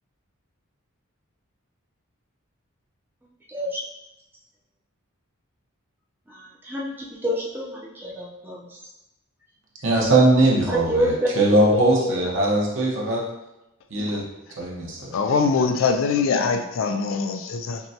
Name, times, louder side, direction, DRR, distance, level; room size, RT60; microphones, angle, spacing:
voice 1, 3.5-3.8 6.3-6.9 7.2-8.8 10.7-11.3 12.0-12.2, equal, 10° right, -5 dB, 0.5 m, -28 dB
voice 2, 9.8-13.2 13.9-14.2 14.6-15.1, right 2 dB, 55° right, -3 dB, 1.0 m, -20 dB
voice 3, 15.1-17.8, left 5 dB, 60° left, 6 dB, 0.3 m, -23 dB
5.8 x 2.2 x 2.8 m, 0.93 s
head